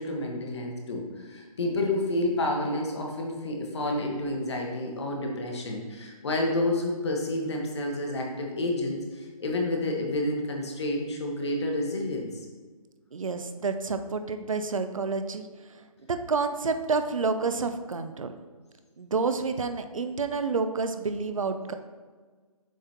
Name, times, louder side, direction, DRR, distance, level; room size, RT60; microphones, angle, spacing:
voice 1, 0.0-12.5, left 1 dB, 45° left, 1 dB, 1.3 m, -29 dB
voice 2, 13.1-15.5 16.1-18.3 19.0-21.7, right 4 dB, 60° right, 8 dB, 0.6 m, -29 dB
7.3 x 5.6 x 2.9 m, 1.4 s
figure-of-eight pair, 155°, 19 cm